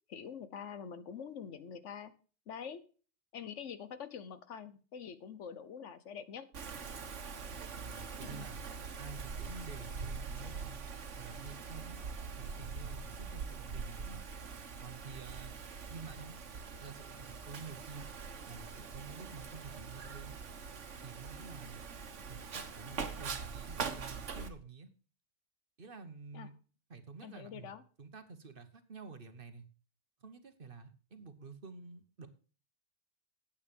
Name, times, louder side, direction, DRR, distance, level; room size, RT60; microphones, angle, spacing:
voice 1, 0.1-2.1 2.5-2.8 3.3-6.4 7.9-8.5 26.3-26.5 27.2-27.8, left 7 dB, 85° left, 13 dB, 1.3 m, -45 dB
Wind, 6.5-24.5, right 5 dB, 85° right, 1.4 m, -43 dB
voice 2, 7.8-8.6 9.0-10.8 11.2-12.0 12.4-14.2 14.8-15.6 15.9-16.4 16.8-18.1 18.5-20.4 21.0-21.8 22.3-24.9 25.8-26.5 26.9-29.6 30.2-32.3, right 4 dB, 50° right, 9 dB, 1.4 m, -49 dB
9.6 x 8.7 x 5.2 m, 0.38 s
omnidirectional pair, 1.2 m